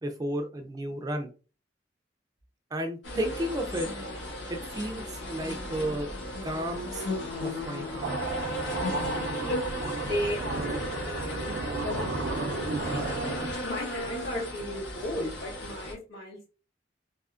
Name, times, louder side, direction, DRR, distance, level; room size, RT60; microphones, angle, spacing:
voice 1, 0.0-1.3 2.7-3.9 4.5-6.1 6.4-7.0 7.4-8.2, right 1 dB, 20° right, 4 dB, 0.3 m, -33 dB
sound 1, 3.0-15.9, left 1 dB, 85° left, 1.1 m, -35 dB
sound 2, 8.0-13.5, right 3 dB, 90° right, 0.5 m, -33 dB
voice 2, 9.9-16.5, left 1 dB, 60° left, -2 dB, 1.8 m, -36 dB
3.4 x 2.7 x 2.4 m, 0.35 s
head